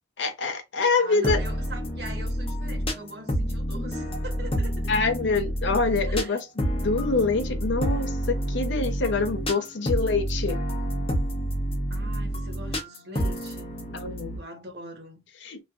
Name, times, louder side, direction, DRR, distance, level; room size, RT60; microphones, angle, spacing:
voice 1, 0.2-1.4 4.9-10.6 13.9-14.3 15.4-15.6, left 4 dB, 85° left, 0.7 m, -26 dB
voice 2, 1.0-4.9 6.1-6.4 11.9-13.7 14.3-15.2, right 1 dB, 65° right, 1.0 m, -42 dB
sound 1, 1.2-14.4, equal, 30° left, 0.8 m, -28 dB
3.1 x 2.4 x 2.4 m
head